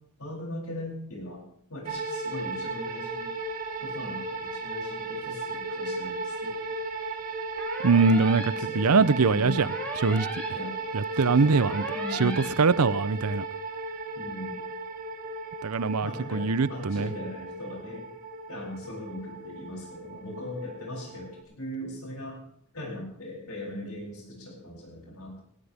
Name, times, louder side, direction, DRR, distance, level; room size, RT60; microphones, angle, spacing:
voice 1, 0.2-1.4 1.7-3.3 3.8-6.6 8.5-9.6 10.5-10.8 11.1-12.5 14.1-14.6 16.0-18.1 18.5-22.4 22.7-25.4, left 1 dB, 80° left, -2 dB, 7.8 m, -39 dB
sound 1, 1.8-21.4, right 3 dB, 40° right, 2.7 m, -35 dB
sound 2, 7.6-8.5 9.6-10.5 11.6-12.5, equal, 5° left, 3.4 m, -38 dB
voice 2, 7.8-9.7 10.0-10.3 10.9-11.8 12.2-13.4 15.6-17.1, right 4 dB, 80° right, 18 dB, 0.7 m, -23 dB
18.5 x 17.0 x 3.6 m, 0.62 s
head